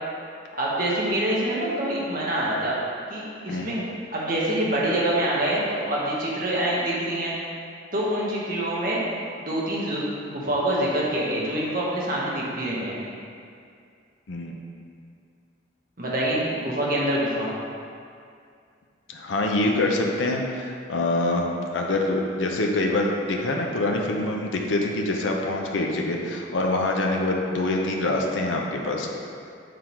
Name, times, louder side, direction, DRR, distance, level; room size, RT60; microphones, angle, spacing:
voice 1, 0.6-2.7 3.1-3.7 4.1-7.3 7.9-9.0 9.4-13.0 16.0-17.5, right 1 dB, 45° right, -6 dB, 1.3 m, -25 dB
voice 2, 19.1-21.5 21.7-29.1, left 2 dB, 70° left, 0 dB, 0.6 m, -25 dB
6.6 x 3.8 x 4.5 m, 2.3 s
head